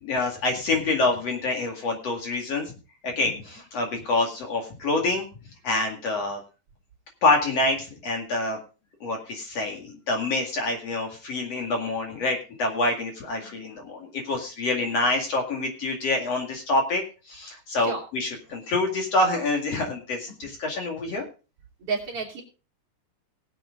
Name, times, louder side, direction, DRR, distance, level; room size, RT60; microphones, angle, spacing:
voice 1, 0.0-2.7 3.0-5.3 5.6-6.4 7.2-8.6 9.0-17.0 17.3-21.2, left 2 dB, 50° left, 2 dB, 3.0 m, -26 dB
voice 2, 21.8-22.4, right 4 dB, 45° right, 0 dB, 3.1 m, -32 dB
19.0 x 7.7 x 3.7 m, 0.33 s
omnidirectional pair, 3.8 m